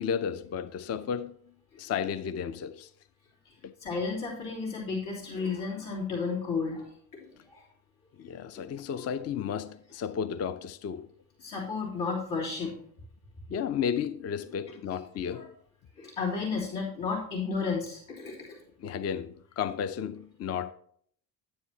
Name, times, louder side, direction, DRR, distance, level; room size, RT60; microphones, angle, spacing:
voice 1, 0.0-1.4 1.8-2.9 3.6-3.7 8.2-11.1 13.5-15.5 18.8-20.7, left 7 dB, 35° left, 0.5 m, -33 dB
voice 2, 3.8-7.6 11.4-12.7 14.9-15.0 15.3-15.5 16.0-18.6, left 4 dB, 75° left, 3.2 m, -33 dB
9.4 x 9.4 x 2.8 m
hypercardioid pair, 55°, 49 cm